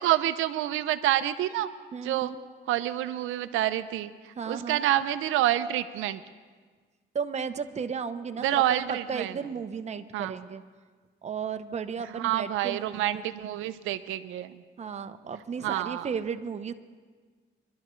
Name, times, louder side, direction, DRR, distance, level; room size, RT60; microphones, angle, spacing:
voice 1, 0.0-1.7 2.0-2.3 2.7-6.2 8.4-9.3 10.1-10.3 12.1-14.6 15.6-16.1, right 13 dB, 85° right, 12 dB, 0.5 m, -28 dB
voice 2, 1.9-2.4 4.4-4.8 7.1-10.6 11.2-13.4 14.8-16.7, right 6 dB, 35° right, 9 dB, 0.7 m, -34 dB
23.5 x 12.0 x 3.1 m, 1.5 s
cardioid pair, 90°, 20 cm